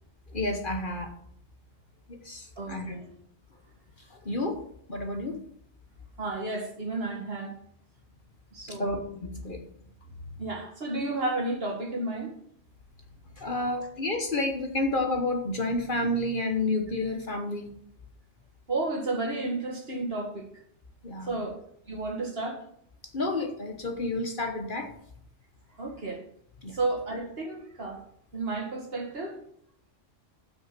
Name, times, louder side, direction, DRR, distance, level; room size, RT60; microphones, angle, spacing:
voice 1, 0.3-1.1 2.1-2.9 4.2-4.6 4.9-5.4 8.7-9.6 13.4-17.7 21.0-21.4 23.1-24.9 26.6-26.8, left 2 dB, 45° left, 1.3 m, -30 dB
voice 2, 2.6-3.1 6.2-7.5 8.5-8.9 10.4-12.3 18.7-20.4 21.2-21.6 21.9-22.6 25.8-26.2 26.7-28.0 28.3-29.4, right 2 dB, 50° right, 2.2 m, -32 dB
8.0 x 6.3 x 7.5 m
omnidirectional pair, 1.3 m